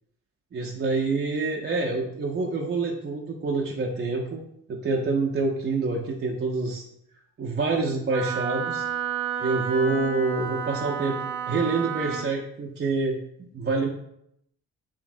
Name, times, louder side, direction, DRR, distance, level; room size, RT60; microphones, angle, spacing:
voice 1, 0.5-4.4 4.7-6.8 7.4-8.9 9.4-11.2 11.5-13.9, right 3 dB, 30° right, -1 dB, 0.6 m, -27 dB
Wind instrument woodwind instrument, 8.1-12.3, right 7 dB, 75° right, 0.7 m, -31 dB
4.9 x 2.6 x 2.5 m, 0.75 s
hypercardioid pair, 45°, 36 cm